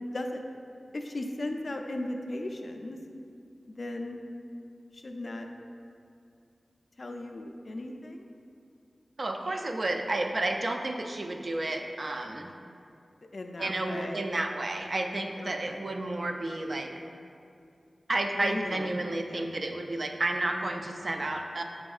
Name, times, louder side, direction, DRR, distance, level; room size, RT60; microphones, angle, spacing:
voice 1, 0.9-3.0 3.7-4.2 4.9-5.5 7.0-8.3 13.2-14.2 15.4-15.8 18.4-18.9 19.3-19.5, left 1 dB, 55° left, 4 dB, 0.3 m, -37 dB
voice 2, 9.2-12.5 13.6-16.9 18.1-21.6, right 2 dB, 50° right, 4 dB, 0.3 m, -31 dB
6.1 x 3.5 x 2.3 m, 2.5 s
wide cardioid pair, 90°, 0 cm